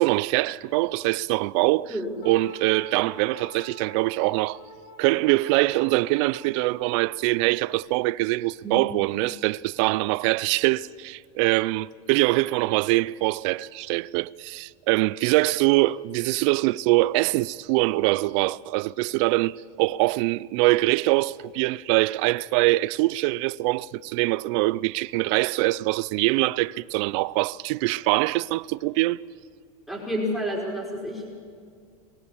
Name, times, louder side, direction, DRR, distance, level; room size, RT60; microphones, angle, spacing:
voice 1, 0.0-1.9 2.2-4.6 5.0-29.2, right 20 dB, 55° right, 0.4 m, -23 dB
Wind instrument woodwind instrument, 2.2-7.8, left 2 dB, 55° left, 3.1 m, -47 dB
voice 2, 29.9-31.3, equal, ahead, 5.0 m, -29 dB
22.0 x 17.5 x 7.2 m
supercardioid pair, 130°, 19 cm